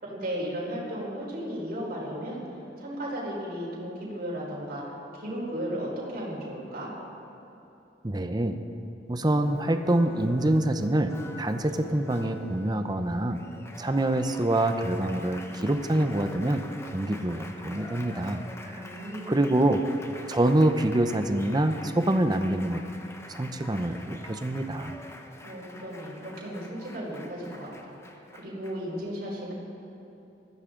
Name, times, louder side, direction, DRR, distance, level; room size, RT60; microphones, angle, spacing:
voice 1, 0.0-2.4 2.8-4.8 5.1-6.9 18.6-19.4 25.4-29.5, equal, 55° right, -6 dB, 4.4 m, -35 dB
voice 2, 8.0-8.6 9.1-13.4 13.8-16.7 16.9-18.8 19.3-19.8 20.3-22.8 23.3-24.9, right 1 dB, 25° right, 8 dB, 0.7 m, -26 dB
Applause, 9.3-29.0, left 1 dB, 15° left, 0.9 m, -45 dB
20.5 x 14.5 x 3.8 m, 3.0 s
head